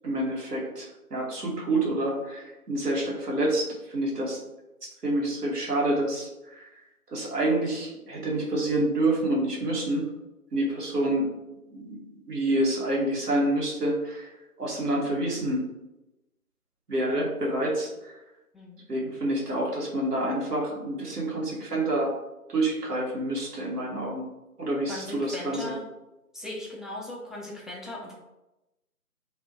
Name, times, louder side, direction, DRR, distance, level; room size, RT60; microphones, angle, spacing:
voice 1, 0.0-4.4 5.0-6.7 7.1-10.1 10.5-11.3 11.7-14.3 14.6-15.6 16.9-18.1 18.9-22.1 22.5-24.2 24.6-25.7, right 1 dB, 90° right, -2 dB, 1.0 m, -28 dB
voice 2, 24.9-25.8 26.3-28.1, left 1 dB, ahead, -4 dB, 0.3 m, -38 dB
2.4 x 2.1 x 2.5 m, 0.96 s
figure-of-eight pair, 160°, 46 cm